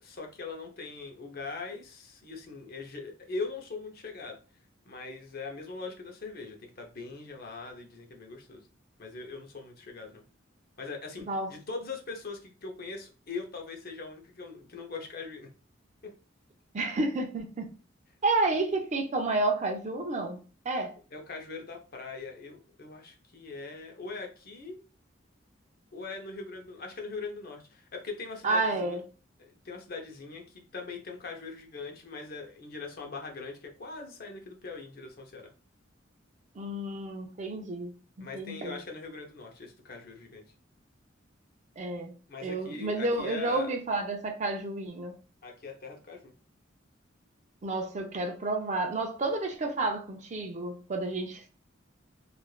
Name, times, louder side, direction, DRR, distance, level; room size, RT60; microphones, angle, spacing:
voice 1, 0.0-4.4 4.9-8.7 9.0-10.2 10.8-15.5 16.0-16.1 21.1-24.8 25.9-29.0 29.4-35.5 38.2-40.4 42.3-43.7 45.4-46.3, left 4 dB, 50° left, 0.7 m, -41 dB
voice 2, 16.7-17.7 18.2-20.9 28.4-29.0 36.6-38.8 41.8-42.1 42.4-45.2 47.6-51.5, right 2 dB, 40° right, 0.5 m, -30 dB
3.1 x 2.4 x 2.3 m
head